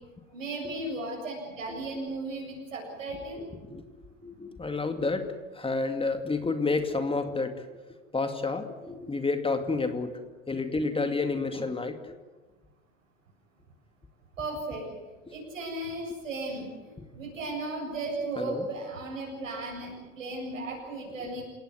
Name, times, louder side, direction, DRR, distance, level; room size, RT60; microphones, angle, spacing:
voice 1, 0.3-3.4 14.4-14.9 15.3-21.4, right 2 dB, 80° right, -1 dB, 7.7 m, -35 dB
voice 2, 4.2-5.3 5.5-7.6 8.1-10.1 10.5-12.0 18.4-18.6, left 3 dB, 15° left, 7 dB, 2.4 m, -29 dB
29.5 x 17.5 x 9.7 m, 1.3 s
figure-of-eight pair, 75°, 38 cm